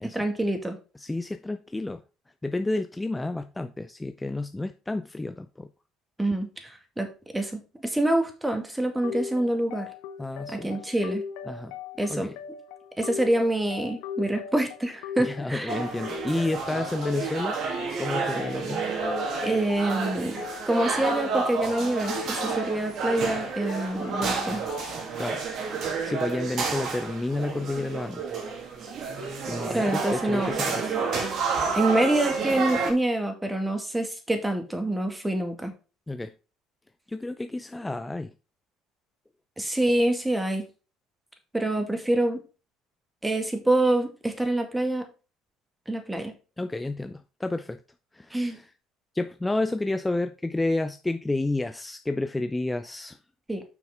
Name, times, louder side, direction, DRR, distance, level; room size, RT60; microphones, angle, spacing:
voice 1, 0.1-0.8 6.2-9.9 10.5-11.2 12.0-12.3 13.0-15.8 19.4-20.4 20.7-24.6 29.7-30.5 31.7-35.7 39.6-40.7 41.5-42.4 43.2-45.1 45.9-46.3 48.3-48.6 53.5-53.6, right 1 dB, 10° right, 2.2 m, -26 dB
voice 2, 1.0-2.0 2.4-5.7 10.2-10.8 11.5-11.7 12.1-12.4 15.2-17.6 18.0-18.8 25.2-25.4 25.8-28.2 29.5-31.0 36.1-36.3 37.1-38.3 46.6-47.8 48.1-48.7 49.1-53.2, left 2 dB, 15° left, 0.6 m, -30 dB
sound 1, 9.0-25.0, left 8 dB, 70° left, 0.7 m, -40 dB
sound 2, 15.7-32.9, right 4 dB, 55° right, 2.1 m, -30 dB
7.2 x 6.1 x 3.8 m
hypercardioid pair, 60°, 0 cm